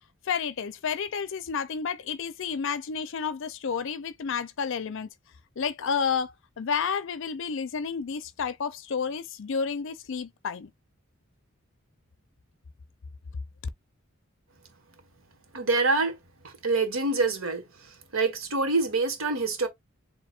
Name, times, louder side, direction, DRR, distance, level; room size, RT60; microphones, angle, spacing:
voice 1, 0.3-5.1 5.6-10.7, left 6 dB, 65° left, 0.5 m, -31 dB
voice 2, 15.5-16.1 16.6-17.6 18.1-19.7, right 3 dB, 80° right, 1.5 m, -25 dB
7.1 x 2.7 x 2.4 m
head